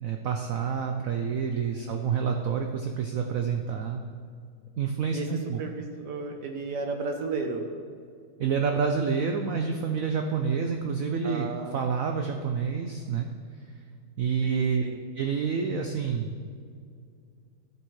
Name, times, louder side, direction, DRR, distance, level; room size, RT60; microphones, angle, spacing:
voice 1, 0.0-4.0 4.8-5.6 8.4-13.3 14.2-14.8 15.1-16.4, right 6 dB, 85° right, 4 dB, 0.7 m, -28 dB
voice 2, 1.7-2.1 5.1-5.3 5.6-7.7 11.2-12.5 14.4-15.0, right 3 dB, 65° right, 4 dB, 1.3 m, -34 dB
13.0 x 7.9 x 3.2 m, 2.2 s
omnidirectional pair, 2.2 m